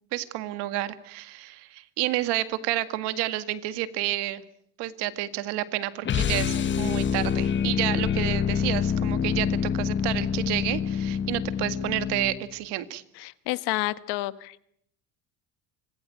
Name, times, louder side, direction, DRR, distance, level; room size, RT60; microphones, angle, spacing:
voice 1, 0.1-4.4 4.8-13.0, right 15 dB, 80° right, 12 dB, 2.0 m, -30 dB
sound 1, 6.0-12.5, left 7 dB, 30° left, 1.4 m, -26 dB
voice 2, 13.2-14.6, left 19 dB, 75° left, 15 dB, 1.4 m, -30 dB
25.5 x 20.0 x 9.3 m, 0.70 s
cardioid pair, 150°, 40 cm